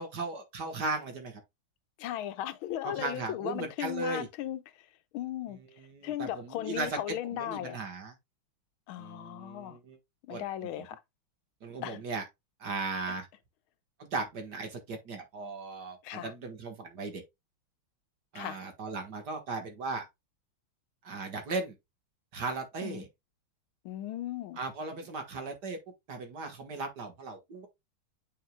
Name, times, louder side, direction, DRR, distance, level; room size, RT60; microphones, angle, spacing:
voice 1, 0.0-1.4 2.8-4.3 5.5-7.0 7.3-8.1 9.0-10.0 10.3-10.4 10.8-10.9 11.6-12.3 12.6-13.3 14.1-17.2 18.3-20.1 21.0-21.8 22.3-23.1 24.6-25.8 26.1-27.7, right 3 dB, 55° right, 2.0 m, -37 dB
voice 2, 2.0-4.9 5.1-5.6 6.0-7.8 8.9-9.8 10.2-11.0 11.8-12.0 16.0-16.3 18.3-18.6 22.8-23.0 23.8-24.6, left 13 dB, 85° left, 1.5 m, -37 dB
8.6 x 5.0 x 2.3 m
omnidirectional pair, 2.3 m